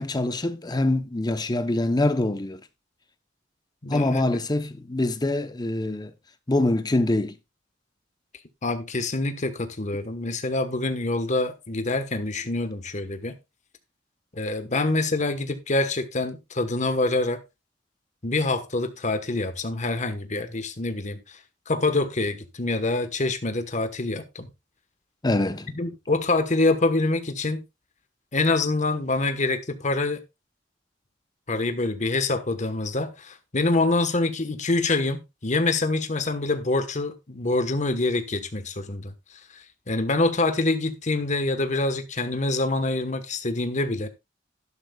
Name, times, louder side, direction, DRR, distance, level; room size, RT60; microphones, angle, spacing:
voice 1, 0.0-2.6 3.9-6.1 6.5-7.3 25.2-25.7, left 2 dB, 20° left, 0.8 m, -24 dB
voice 2, 3.8-4.2 8.6-13.4 14.3-17.4 18.2-21.2 21.7-24.5 25.8-27.6 28.3-30.2 31.5-39.1 39.9-44.1, left 2 dB, 40° left, 1.3 m, -25 dB
12.0 x 11.0 x 2.4 m
head